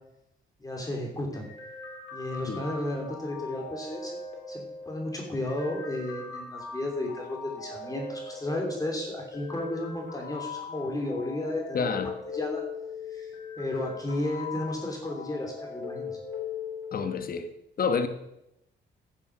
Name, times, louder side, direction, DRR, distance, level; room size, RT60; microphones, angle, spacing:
voice 1, 0.6-1.5 2.1-4.2 4.5-12.0 12.3-12.6 13.1-13.3 13.6-16.1, left 1 dB, 20° left, 0 dB, 3.1 m, -33 dB
sound 1, 1.3-17.3, left 5 dB, 70° left, 3.7 m, -40 dB
voice 2, 11.7-12.1 16.9-17.5 17.8-18.1, left 5 dB, 45° left, 8 dB, 1.3 m, -28 dB
11.0 x 7.1 x 6.1 m, 0.85 s
cardioid pair, 90°, 20 cm